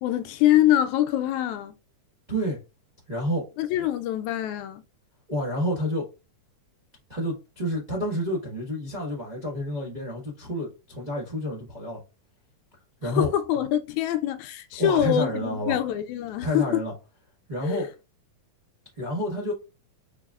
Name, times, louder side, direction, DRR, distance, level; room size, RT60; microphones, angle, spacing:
voice 1, 0.0-1.8 3.6-4.8 13.0-16.8 17.6-17.9, left 12 dB, 80° left, 1.8 m, -24 dB
voice 2, 2.3-2.6 3.1-3.4 5.3-6.1 7.1-12.0 13.0-13.3 14.8-15.8 16.4-16.9 17.5-17.9 19.0-19.5, equal, 70° right, 0.4 m, -29 dB
4.8 x 4.4 x 2.4 m
omnidirectional pair, 3.5 m